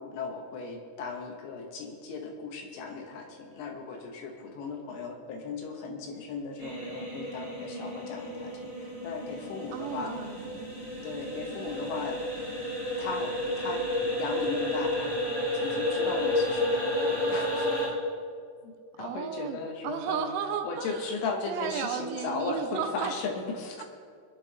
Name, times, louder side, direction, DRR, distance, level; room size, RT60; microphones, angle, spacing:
voice 1, 0.0-10.1 11.0-12.2 13.0-13.9 14.2-15.2 15.5-17.8 18.6-18.7 19.0-20.3 20.6-23.8, left 4 dB, 75° left, 3 dB, 3.2 m, -36 dB
sound 1, 6.6-17.9, left 1 dB, 30° left, 4.1 m, -31 dB
voice 2, 9.7-10.7 19.0-19.6 19.8-21.2 21.5-23.1, right 8 dB, 85° right, 5 dB, 3.2 m, -34 dB
23.0 x 11.0 x 2.9 m, 2.2 s
omnidirectional pair, 5.6 m